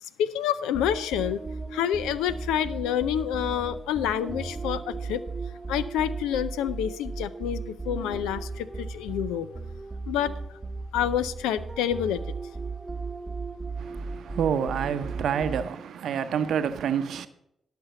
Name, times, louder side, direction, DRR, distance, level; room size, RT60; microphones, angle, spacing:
voice 1, 0.0-1.4 1.7-5.2 5.7-9.5 10.1-10.6 10.9-12.3, left 10 dB, 85° left, 0.4 m, -28 dB
sound 1, 0.7-15.9, right 3 dB, 25° right, 0.8 m, -36 dB
voice 2, 13.8-17.3, right 7 dB, 75° right, 0.7 m, -28 dB
11.5 x 5.9 x 6.7 m
supercardioid pair, 45°, 0 cm